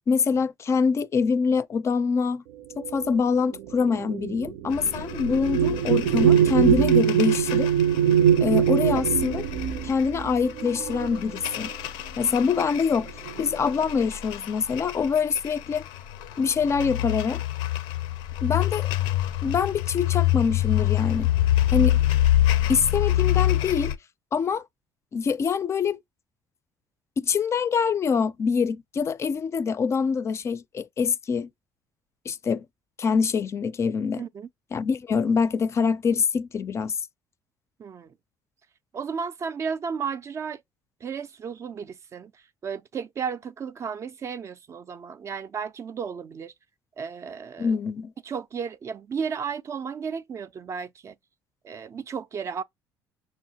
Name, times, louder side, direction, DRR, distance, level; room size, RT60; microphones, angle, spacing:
voice 1, 0.1-2.4 2.8-7.7 8.4-9.5 9.8-11.7 12.2-13.1 13.4-15.8 16.4-17.4 18.4-18.9 19.4-21.3 21.7-22.0 22.7-23.9 24.3-24.6 25.1-26.0 27.2-31.5 32.3-32.6 33.0-34.2 34.7-36.9 47.6-48.1, left 5 dB, 35° left, 0.4 m, -25 dB
sound 1, 2.8-11.7 12.6-12.8 13.1-13.7, right 8 dB, 85° right, 0.5 m, -23 dB
sound 2, 4.7-24.0, left 13 dB, 90° left, 0.5 m, -27 dB
voice 2, 34.2-34.5 37.8-38.1 38.9-40.6 41.0-42.3 42.6-46.5 47.0-47.8 48.2-51.1 51.6-52.6, right 6 dB, 35° right, 0.3 m, -33 dB
6.1 x 2.0 x 2.7 m
cardioid pair, 115°, 8 cm